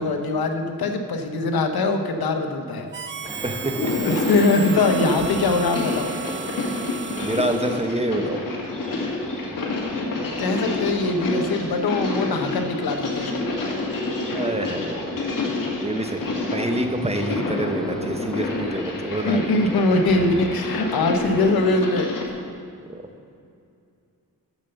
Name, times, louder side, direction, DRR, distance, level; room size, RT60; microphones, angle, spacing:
voice 1, 0.0-2.9 3.3-3.4 4.0-6.1 9.0-9.3 10.4-13.5 19.2-22.1, left 3 dB, 75° left, 6 dB, 0.9 m, -22 dB
Harmonica, 2.9-8.0, right 8 dB, 35° right, 0.4 m, -35 dB
sound 1, 3.2-21.9, equal, ahead, 1.3 m, -40 dB
voice 2, 3.4-4.2 4.5-4.7 7.2-8.4 14.3-15.3 15.6-19.6 22.9-23.0, right 2 dB, 15° right, 5 dB, 0.8 m, -28 dB
sound 2, 3.7-22.3, left 2 dB, 60° left, 1.6 m, -28 dB
7.2 x 6.8 x 6.8 m, 2.4 s
cardioid pair, 80°, 37 cm